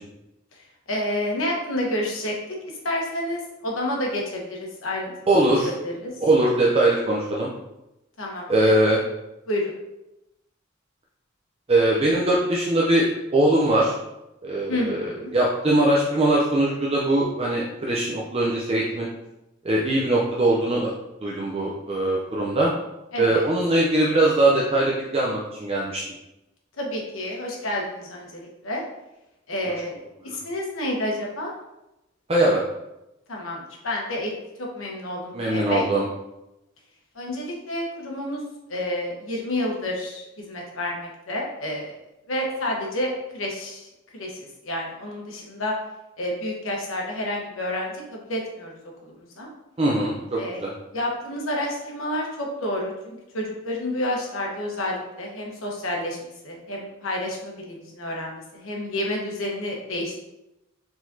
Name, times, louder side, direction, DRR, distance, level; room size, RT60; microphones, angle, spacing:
voice 1, 0.9-2.3 2.8-5.1 5.6-6.1 8.2-8.7 9.5-9.8 14.7-15.3 23.1-23.5 26.8-28.8 29.5-30.0 30.2-31.5 33.3-34.3 34.6-35.8 37.1-38.4 38.7-42.0 42.3-43.9 44.1-44.4 44.6-45.7 46.2-48.8 49.0-49.5 50.4-50.6 50.9-60.2, left 1 dB, 85° left, -1 dB, 1.1 m, -29 dB
voice 2, 5.3-5.7 6.2-7.5 8.5-9.0 11.7-13.1 13.3-13.9 14.4-19.1 19.6-20.9 21.2-22.7 23.2-26.0 32.3-32.6 35.3-36.1 49.8-50.7, right 1 dB, 30° right, -4 dB, 0.6 m, -21 dB
4.8 x 4.0 x 2.7 m, 0.93 s
head